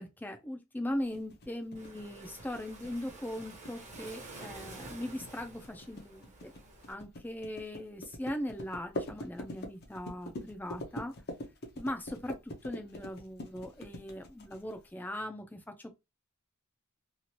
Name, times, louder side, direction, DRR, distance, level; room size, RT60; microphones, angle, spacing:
voice 1, 0.0-6.5 6.9-11.1 11.8-15.9, left 1 dB, 10° left, 0.4 m, -39 dB
sound 1, 1.1-14.9, left 1 dB, 45° left, 0.6 m, -44 dB
Waves surf, 1.7-6.9, right 2 dB, 35° right, 0.9 m, -49 dB
3.0 x 2.4 x 2.8 m
head